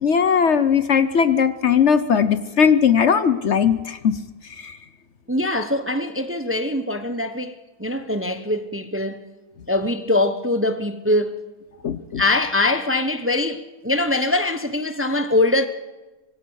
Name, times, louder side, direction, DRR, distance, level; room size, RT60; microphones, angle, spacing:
voice 1, 0.0-4.2 4.6-4.8 11.8-12.2, left 7 dB, 55° left, 1.1 m, -18 dB
voice 2, 5.3-9.2 9.7-11.4 12.2-15.7, left 2 dB, 10° right, 0.9 m, -22 dB
25.0 x 21.0 x 6.5 m
omnidirectional pair, 1.5 m